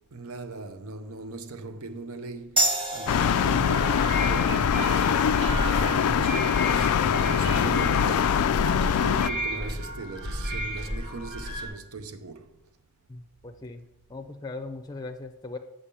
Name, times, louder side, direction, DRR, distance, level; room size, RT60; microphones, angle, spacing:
voice 1, 0.1-5.3 5.9-12.6, right 3 dB, 70° right, 0.7 m, -39 dB
sound 1, 2.6-9.7, right 2 dB, 20° right, 1.3 m, -34 dB
sound 2, 3.1-9.3, left 8 dB, 75° left, 0.3 m, -23 dB
sound 3, 3.5-11.7, equal, 50° right, 2.0 m, -33 dB
voice 2, 13.1-15.6, left 3 dB, 15° left, 0.5 m, -39 dB
7.2 x 5.4 x 6.8 m
head